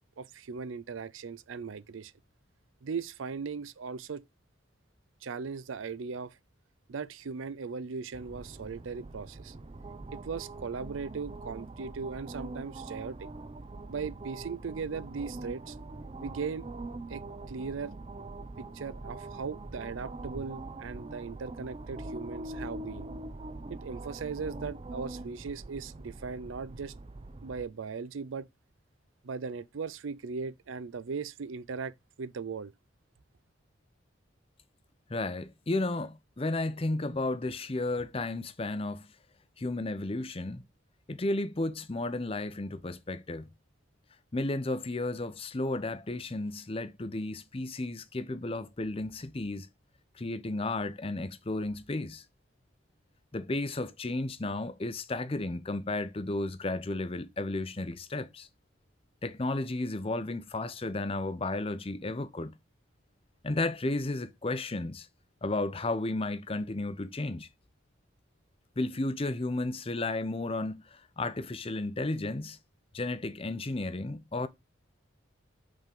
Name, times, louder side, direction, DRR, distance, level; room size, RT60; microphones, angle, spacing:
voice 1, 0.2-2.1 2.8-4.2 5.2-6.4 6.9-9.5 10.1-13.3 13.9-15.8 16.2-16.7 17.1-18.0 18.6-23.1 23.7-26.9 27.4-28.5 29.2-32.7, right 5 dB, 85° right, 0.5 m, -38 dB
sound 1, 8.1-27.6, right 2 dB, 30° right, 0.5 m, -43 dB
voice 2, 35.1-39.1 39.6-40.6 41.1-43.5 44.3-49.7 50.1-52.2 53.3-58.5 59.2-62.5 63.4-65.1 65.4-67.5 68.8-72.6 72.9-74.5, left 2 dB, 30° left, 0.6 m, -33 dB
5.4 x 3.7 x 5.1 m
head